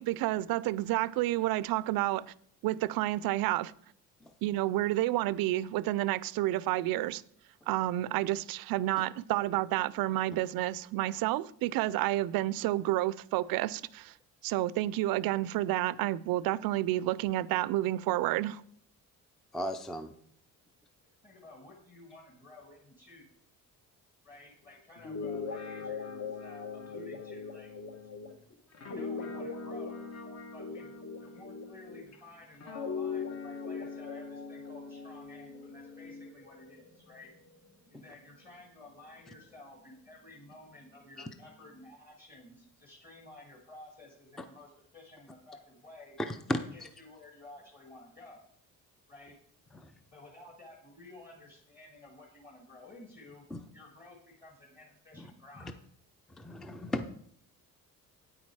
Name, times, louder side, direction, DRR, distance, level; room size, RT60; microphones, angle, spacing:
voice 1, 0.0-2.2 2.6-3.7 4.4-7.2 7.7-14.1 14.4-18.6, right 15 dB, 85° right, 0.5 m, -30 dB
voice 2, 19.5-20.1 37.9-38.0 41.2-41.3 46.3-46.6 49.8-49.9 53.5-53.6 56.4-57.1, left 1 dB, ahead, 0.4 m, -35 dB
voice 3, 21.2-23.4 24.2-27.7 28.8-30.1 30.5-30.9 31.2-37.3 37.9-46.2 46.7-48.5 49.1-49.3 50.1-53.4 53.7-55.8, left 2 dB, 25° left, 1.8 m, -53 dB
Guitar, 25.0-32.2 32.6-36.3, left 5 dB, 50° left, 1.3 m, -40 dB
sound 1, 31.8-41.8, right 1 dB, 85° left, 4.6 m, -60 dB
9.0 x 8.5 x 4.7 m
cardioid pair, 160°, 34 cm